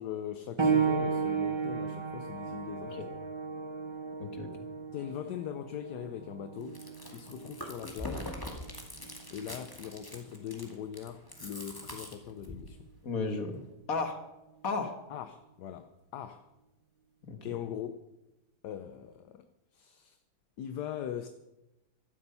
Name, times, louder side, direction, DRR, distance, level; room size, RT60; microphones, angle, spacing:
voice 1, 0.0-3.0 4.9-6.8 7.1-8.3 9.3-12.9 15.1-16.5 17.4-18.0 18.6-19.5 19.7-20.2 20.6-21.3, left 9 dB, 65° left, 1.2 m, -41 dB
sound 1, 0.6-10.8 11.8-11.9 12.6-12.7, right 5 dB, 20° right, 0.9 m, -35 dB
voice 2, 4.2-4.5 13.0-14.2 14.6-14.9 17.2-17.5, left 4 dB, 45° left, 2.0 m, -34 dB
Chewing mastication, 6.6-12.7, left 1 dB, 10° left, 2.1 m, -43 dB
15.5 x 12.5 x 5.6 m
omnidirectional pair, 2.1 m